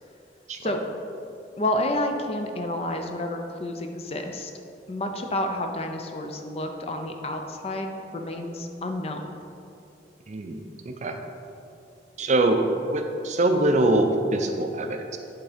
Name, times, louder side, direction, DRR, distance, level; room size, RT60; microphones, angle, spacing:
voice 1, 1.6-4.5 4.9-9.4, left 1 dB, 35° left, 4 dB, 0.5 m, -30 dB
voice 2, 10.3-10.6 10.9-11.2 12.2-12.6 12.9-15.2, right 2 dB, 40° right, 5 dB, 0.5 m, -23 dB
8.5 x 3.6 x 5.0 m, 2.6 s
head